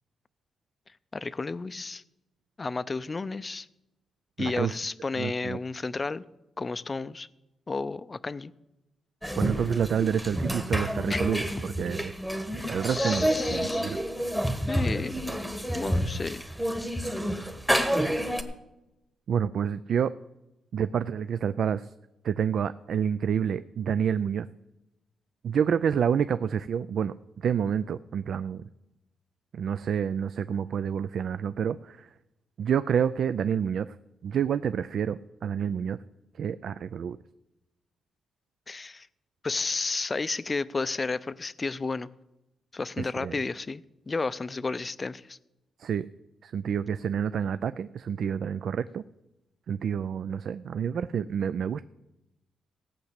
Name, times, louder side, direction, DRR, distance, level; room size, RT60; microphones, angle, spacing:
voice 1, 1.1-2.0 2.6-3.7 4.4-6.2 6.6-7.3 7.7-8.5 11.1-11.2 12.8-14.0 14.7-15.1 15.6-16.4 38.7-39.1 39.4-42.1 42.7-45.4, left 3 dB, 25° left, 0.4 m, -32 dB
voice 2, 4.4-4.8 5.2-5.6 9.4-12.1 12.7-14.0 19.3-20.1 20.7-21.9 22.2-24.5 25.4-28.6 29.5-32.1 32.6-33.9 34.2-36.0 36.4-37.2 43.0-43.4 45.8-46.1 46.4-49.0 49.7-51.8, right 8 dB, 60° right, 0.3 m, -28 dB
sound 1, 9.2-18.4, equal, 5° right, 1.1 m, -29 dB
16.0 x 5.9 x 8.1 m
cardioid pair, 115°, 0 cm